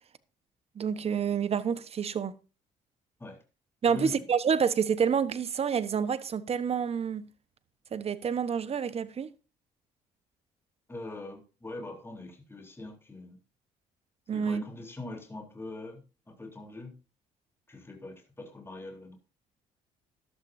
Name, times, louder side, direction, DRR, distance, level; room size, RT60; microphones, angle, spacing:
voice 1, 0.8-2.4 3.8-7.3 7.9-9.3 14.3-14.6, right 7 dB, 45° right, 1.1 m, -28 dB
voice 2, 3.9-4.2 10.9-13.4 14.3-16.9 17.7-19.2, left 2 dB, 15° left, 3.7 m, -42 dB
13.5 x 12.0 x 2.7 m
cardioid pair, 90°, 15 cm